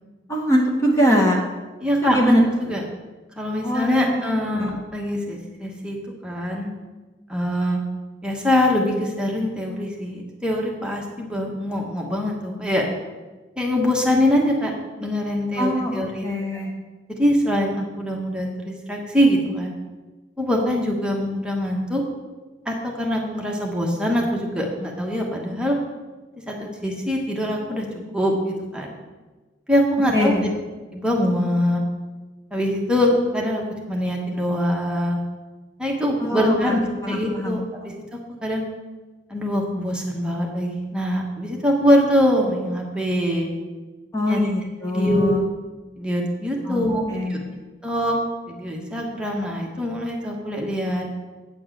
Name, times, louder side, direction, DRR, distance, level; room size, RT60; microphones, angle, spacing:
voice 1, 0.3-1.4 2.0-2.4 3.6-4.7 15.6-16.7 30.1-30.4 36.2-36.8 37.0-37.6 44.1-45.4 46.6-47.4, equal, 15° left, -1 dB, 1.1 m, -22 dB
voice 2, 1.8-2.8 3.4-6.0 6.2-6.7 7.3-7.8 8.2-12.9 13.6-14.7 15.0-16.3 17.2-19.7 20.4-22.0 22.7-25.8 26.5-27.8 28.1-28.9 29.7-30.3 30.9-31.8 32.5-35.2 35.8-37.6 38.4-38.6 39.3-43.5 44.2-44.4 44.9-45.5 46.0-47.4 47.8-48.2 48.5-51.1, equal, 5° right, -1 dB, 1.2 m, -23 dB
9.0 x 4.6 x 7.3 m, 1.2 s
head